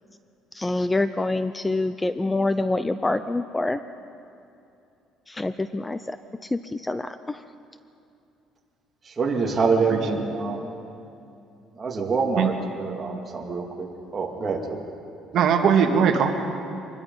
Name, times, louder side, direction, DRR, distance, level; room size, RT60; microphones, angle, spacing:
voice 1, 0.5-3.8 5.3-6.2 6.5-7.4, left 2 dB, 10° left, 12 dB, 0.4 m, -26 dB
voice 2, 9.0-10.7 11.8-13.9 14.1-14.8, right 4 dB, 25° right, 0 dB, 2.4 m, -26 dB
voice 3, 9.9-10.3 12.4-12.5 15.3-16.3, right 7 dB, 55° right, 4 dB, 1.9 m, -20 dB
25.0 x 20.5 x 5.5 m, 2.7 s
cardioid pair, 145°, 0 cm